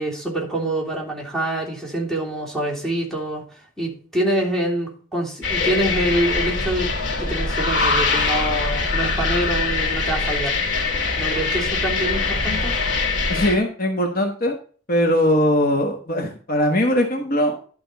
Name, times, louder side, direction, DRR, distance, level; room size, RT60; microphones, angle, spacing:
voice 1, 0.0-3.4 3.8-6.9 7.2-10.6 11.2-12.7, right 1 dB, ahead, -5 dB, 3.2 m, -25 dB
sound 1, 5.4-13.6, left 3 dB, 70° left, 4.1 m, -23 dB
voice 2, 13.3-14.5 14.9-17.6, equal, 50° left, 3 dB, 1.3 m, -20 dB
11.5 x 5.4 x 4.0 m, 0.41 s
head